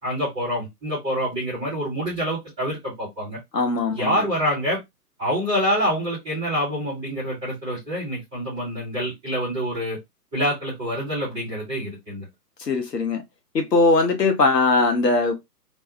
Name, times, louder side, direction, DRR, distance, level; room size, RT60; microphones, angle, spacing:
voice 1, 0.0-3.4 3.9-4.8 5.2-10.0 10.3-12.3, equal, 5° right, 0.5 m, -26 dB
voice 2, 3.5-4.2 12.6-13.2 13.5-15.4, left 3 dB, 75° left, 1.2 m, -20 dB
3.4 x 2.2 x 2.8 m
figure-of-eight pair, 135°, 49 cm